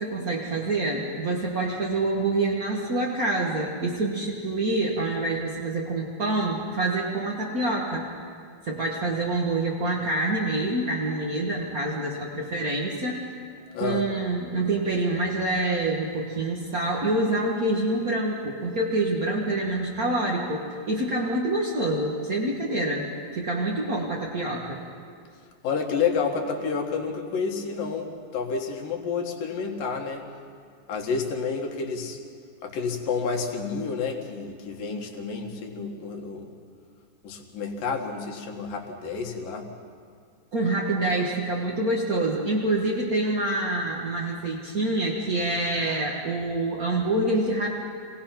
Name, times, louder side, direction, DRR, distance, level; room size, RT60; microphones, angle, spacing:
voice 1, 0.0-8.0 8.6-13.2 13.8-23.1 23.3-24.8 40.5-47.8, right 2 dB, 50° right, -2 dB, 1.0 m, -26 dB
voice 2, 13.7-14.1 25.6-30.2 30.9-32.2 32.6-36.5 37.2-39.7, left 5 dB, 90° left, 2 dB, 3.3 m, -29 dB
26.0 x 17.5 x 5.9 m, 2.2 s
omnidirectional pair, 3.8 m